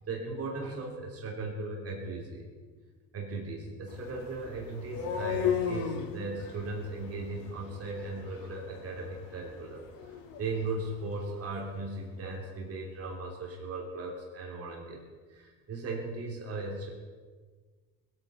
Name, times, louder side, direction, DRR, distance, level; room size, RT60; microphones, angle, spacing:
voice 1, 0.1-2.5 3.1-10.1 10.4-16.9, right 3 dB, 40° right, -1 dB, 3.3 m, -37 dB
sound 1, 3.9-11.8, left 8 dB, 70° left, 2.4 m, -37 dB
21.0 x 9.0 x 5.5 m, 1.5 s
cardioid pair, 125°, 35 cm